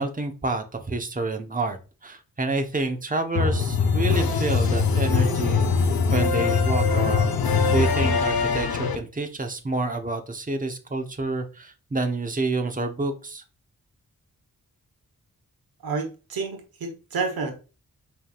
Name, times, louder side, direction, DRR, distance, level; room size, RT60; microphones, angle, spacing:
voice 1, 0.0-7.4 7.7-13.4, right 2 dB, 25° right, 1.1 m, -28 dB
sound 1, 3.3-9.0, left 5 dB, 80° left, 0.7 m, -22 dB
voice 2, 15.8-17.5, right 4 dB, 85° right, 1.3 m, -29 dB
5.2 x 3.5 x 2.5 m
cardioid pair, 45°, 36 cm